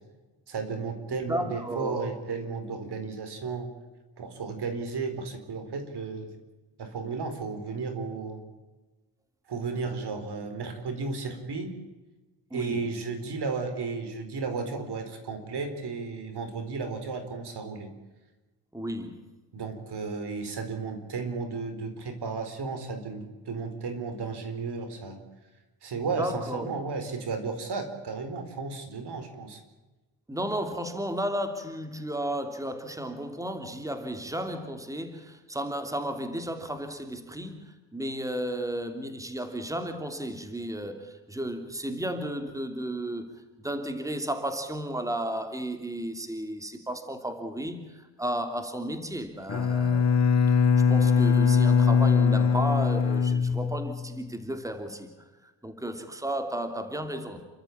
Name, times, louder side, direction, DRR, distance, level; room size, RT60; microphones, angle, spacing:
voice 1, 0.5-3.7 4.2-6.3 6.8-8.4 9.5-11.7 12.5-17.9 19.5-25.2 25.8-29.6, right 4 dB, 65° right, 8 dB, 4.4 m, -34 dB
voice 2, 1.1-2.1 12.5-12.8 18.7-19.3 26.2-26.7 30.3-43.3 43.6-50.1 50.5-55.1 55.4-57.5, right 1 dB, 5° right, 7 dB, 2.9 m, -33 dB
Bowed string instrument, 49.5-54.2, left 6 dB, 35° left, 1.2 m, -22 dB
29.0 x 13.5 x 8.7 m, 1.2 s
cardioid pair, 85°, 43 cm